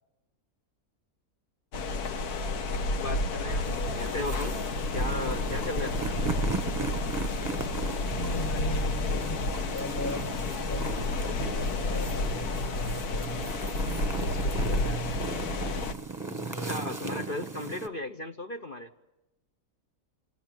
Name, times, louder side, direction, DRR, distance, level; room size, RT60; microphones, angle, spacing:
sound 1, 1.7-15.9, left 2 dB, 80° left, 1.7 m, -31 dB
voice 1, 3.0-4.6 4.9-6.2 16.5-18.9, left 2 dB, 40° left, 6 dB, 1.0 m, -36 dB
sound 2, 3.6-17.9, right 4 dB, 15° right, 1.3 m, -38 dB
sound 3, 3.7-11.6, right 2 dB, 55° left, 4.6 m, -42 dB
voice 2, 8.0-11.1 11.7-13.5 14.2-15.3 16.3-16.9, equal, 10° left, 9 dB, 0.8 m, -39 dB
28.0 x 28.0 x 5.2 m, 0.97 s
omnidirectional pair, 1.6 m